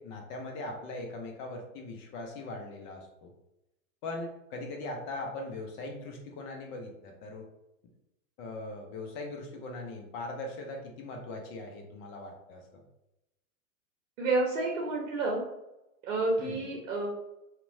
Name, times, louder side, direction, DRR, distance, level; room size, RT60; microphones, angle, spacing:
voice 1, 0.0-3.3 4.0-7.5 8.4-12.8 16.4-16.7, left 2 dB, 25° left, 2 dB, 0.3 m, -40 dB
voice 2, 14.2-15.4 16.0-17.1, right 3 dB, 70° right, -1 dB, 0.8 m, -29 dB
2.8 x 2.0 x 2.6 m, 0.90 s
hypercardioid pair, 100°, 41 cm